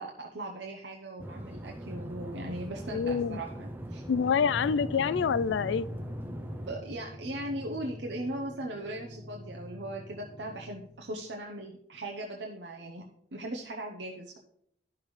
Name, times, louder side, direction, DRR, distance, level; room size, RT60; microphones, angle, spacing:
voice 1, 0.0-4.0 6.7-13.0 13.3-14.4, right 1 dB, 75° right, 0.9 m, -39 dB
sound 1, 1.2-6.8, right 1 dB, 10° right, 0.5 m, -41 dB
voice 2, 2.9-3.4 4.1-5.9, left 6 dB, 85° left, 0.3 m, -27 dB
sound 2, 4.4-11.3, left 1 dB, 30° left, 4.2 m, -44 dB
12.5 x 5.9 x 3.2 m
head